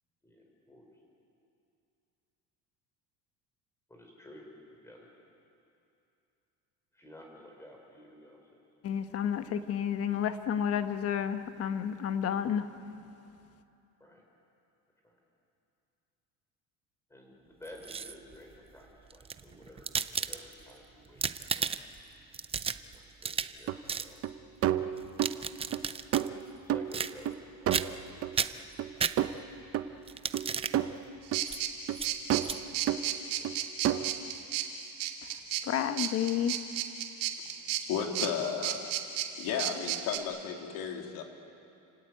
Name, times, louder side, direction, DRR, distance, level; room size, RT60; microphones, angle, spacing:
voice 1, 0.2-0.9 3.9-5.1 6.9-8.6 14.0-14.2 15.0-15.2 17.1-19.9 20.2-21.7 22.9-24.8 26.6-28.7 32.9-33.7 39.3-39.4, left 1 dB, 10° left, 0 dB, 5.3 m, -53 dB
voice 2, 8.8-12.7 35.6-36.6, left 8 dB, 45° left, 9 dB, 1.3 m, -30 dB
sound 1, 17.6-18.3 19.1-20.7 21.1-22.0 22.3-23.6 23.9-24.1 25.0-26.3 26.9-27.4 27.7-28.1 28.3-29.6 30.1-30.8 31.5-31.6 31.9-32.1 32.4-32.6, right 6 dB, 15° right, 0.5 m, -34 dB
sound 2, 23.7-23.8 24.2-24.3 24.6-25.4 25.7-25.8 26.1-27.4 27.7-28.4 28.8-28.9 29.2-29.4 29.7-29.9 30.3-31.0 31.3-31.4 31.9-32.0 32.3-32.6 32.9-33.0 33.4-33.6 33.8-34.2, right 11 dB, 45° right, 0.9 m, -30 dB
sound 3, 31.3-40.2, right 11 dB, 75° right, 2.4 m, -34 dB
voice 3, 37.9-38.8 39.4-41.2, left 7 dB, 75° left, 2 dB, 3.2 m, -33 dB
29.5 x 17.0 x 9.3 m, 2.7 s
cardioid pair, 155°, 34 cm